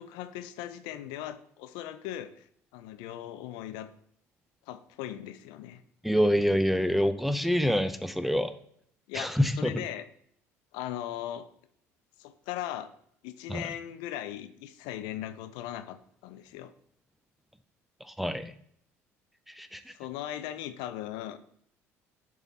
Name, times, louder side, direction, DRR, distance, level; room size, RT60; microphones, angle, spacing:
voice 1, 0.0-2.4 2.7-3.9 4.7-5.8 9.1-10.1 10.7-11.5 12.2-12.9 13.2-16.7 19.9-21.4, left 12 dB, 70° left, 12 dB, 0.4 m, -38 dB
voice 2, 6.0-8.5 9.1-9.7 13.5-13.7 18.0-18.5 19.5-19.9, equal, ahead, 10 dB, 0.5 m, -26 dB
7.0 x 3.7 x 4.0 m, 0.66 s
hypercardioid pair, 60°, 8 cm